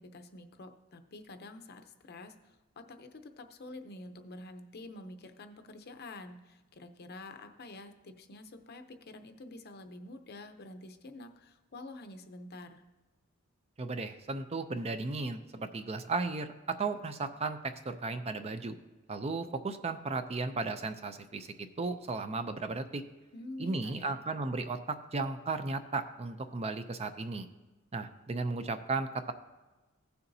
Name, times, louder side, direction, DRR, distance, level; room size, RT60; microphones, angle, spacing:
voice 1, 0.0-12.8 23.3-24.2, left 2 dB, 50° left, 7 dB, 0.7 m, -48 dB
voice 2, 13.8-18.8 19.1-23.0 23.6-27.5 27.9-29.3, right 3 dB, 30° right, 9 dB, 0.5 m, -35 dB
16.0 x 6.8 x 2.7 m, 1.2 s
head